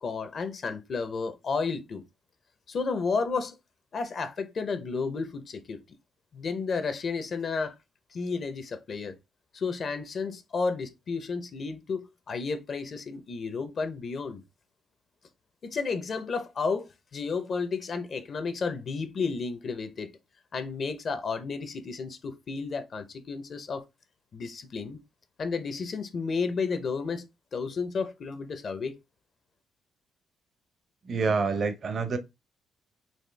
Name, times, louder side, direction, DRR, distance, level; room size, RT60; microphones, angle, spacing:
voice 1, 0.0-2.0 2.7-3.6 3.9-5.8 6.3-7.7 8.1-9.2 9.5-14.4 15.6-20.1 20.5-23.8 24.3-25.0 25.4-27.2 27.5-29.0, left 4 dB, 50° left, 0.7 m, -32 dB
voice 2, 31.1-32.2, right 4 dB, 50° right, 0.8 m, -27 dB
4.3 x 2.8 x 3.3 m
cardioid pair, 90°, 0 cm